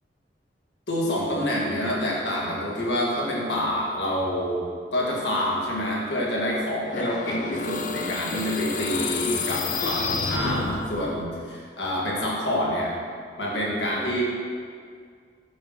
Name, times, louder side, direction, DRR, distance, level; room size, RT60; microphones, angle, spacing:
voice 1, 0.9-4.6 4.9-12.9 13.4-14.2, left 1 dB, 80° left, -4 dB, 1.8 m, -27 dB
sound 1, 6.9-11.1, left 4 dB, 50° left, 0.5 m, -29 dB
8.5 x 8.0 x 3.1 m, 2.1 s
head